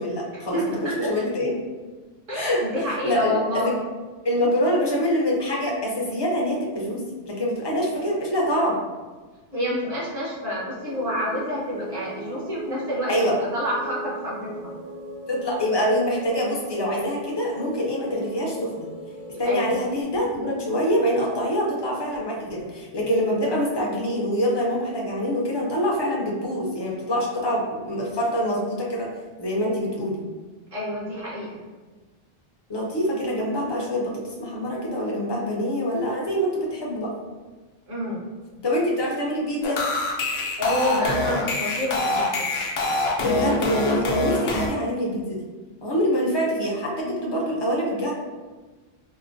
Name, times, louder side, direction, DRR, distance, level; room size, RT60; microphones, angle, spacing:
voice 1, 0.0-1.5 2.3-2.6 2.9-3.7 4.2-8.8 13.1-13.4 15.3-18.9 19.4-29.1 29.4-30.2 32.7-34.1 34.4-37.1 38.6-39.8 43.2-45.4 45.8-48.1, equal, 30° left, -3 dB, 0.5 m, -25 dB
voice 2, 0.5-1.1 2.3-3.8 9.5-14.7 19.4-19.8 30.7-31.6 37.9-38.2 40.6-42.5, left 1 dB, 55° right, -7 dB, 1.3 m, -28 dB
sound 1, 10.8-20.0, right 1 dB, 35° right, 0.6 m, -38 dB
sound 2, 39.6-44.7, left 2 dB, 80° left, 0.8 m, -25 dB
4.7 x 2.1 x 2.5 m, 1.3 s
omnidirectional pair, 1.0 m